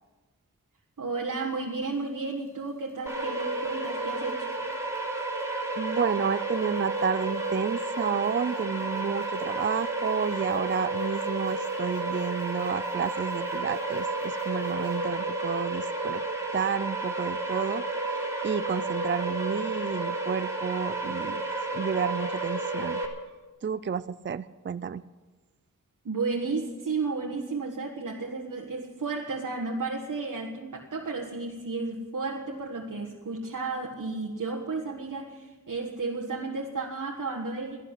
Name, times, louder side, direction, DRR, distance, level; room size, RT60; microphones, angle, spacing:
voice 1, 1.0-4.5 26.0-37.8, right 3 dB, 70° right, 0 dB, 1.5 m, -33 dB
sound 1, 1.4-15.0, right 3 dB, 55° left, 4.4 m, -53 dB
sound 2, 3.1-23.1, right 2 dB, 10° right, 3.1 m, -31 dB
voice 2, 5.8-16.2 16.5-17.8 18.1-21.4 21.7-23.0 23.6-25.0, right 7 dB, 35° right, 15 dB, 0.4 m, -31 dB
13.5 x 11.5 x 8.2 m, 1.3 s
wide cardioid pair, 65°, 32 cm